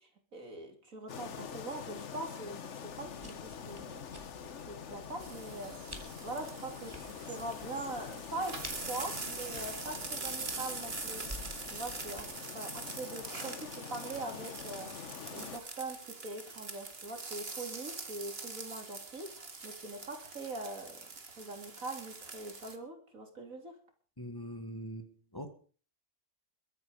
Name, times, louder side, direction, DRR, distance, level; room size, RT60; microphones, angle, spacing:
voice 1, 0.0-4.2 4.7-5.9 6.2-11.2 11.7-14.9 15.3-19.3 19.6-21.1 21.3-23.7, right 2 dB, 80° right, 4 dB, 3.6 m, -42 dB
sound 1, 1.1-15.6, left 7 dB, 60° left, 1.3 m, -45 dB
sound 2, 2.9-12.2, equal, 15° right, 3.4 m, -52 dB
sound 3, 5.2-22.8, right 4 dB, 45° right, 2.1 m, -44 dB
voice 2, 24.2-25.1 25.3-25.5, equal, 15° left, 7 dB, 1.8 m, -42 dB
22.5 x 9.6 x 5.1 m, 0.41 s
omnidirectional pair, 1.4 m